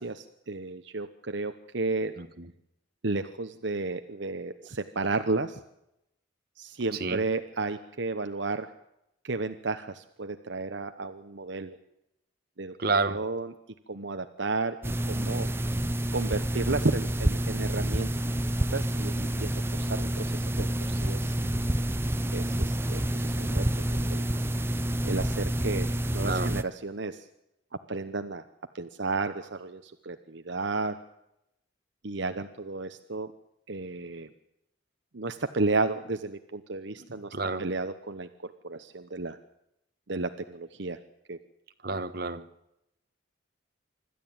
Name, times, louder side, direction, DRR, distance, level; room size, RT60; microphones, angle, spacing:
voice 1, 0.0-2.1 3.0-5.6 6.6-8.7 9.2-11.8 12.6-12.7 13.1-13.5 13.9-14.8 15.1-15.5 16.1-18.1 18.7-21.4 22.3-24.2 25.0-27.3 27.9-28.4 28.7-31.0 32.0-33.3 33.7-34.3 35.1-37.3 37.6-39.4 40.1-41.0 41.3-41.4, right 3 dB, 65° right, 8 dB, 1.0 m, -33 dB
voice 2, 2.2-2.5 6.9-7.2 12.8-13.2 26.2-26.6 37.0-37.6 41.8-42.5, right 3 dB, 50° right, 8 dB, 1.4 m, -30 dB
sound 1, 14.8-26.6, right 1 dB, 10° right, 0.7 m, -28 dB
26.0 x 13.0 x 8.8 m, 0.84 s
head